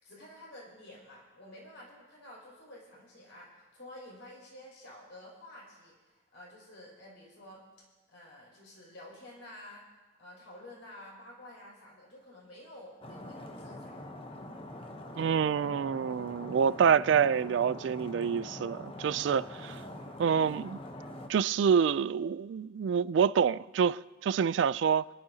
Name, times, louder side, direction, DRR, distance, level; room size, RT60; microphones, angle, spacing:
voice 1, 0.0-7.6 8.1-9.9 10.2-14.0, left 1 dB, 75° left, 5.8 m, -50 dB
Stream, 13.0-21.3, left 1 dB, 30° left, 0.9 m, -44 dB
voice 2, 15.2-19.8 20.2-20.8 21.3-25.1, right 7 dB, 65° right, 0.3 m, -27 dB
28.0 x 11.5 x 2.8 m
head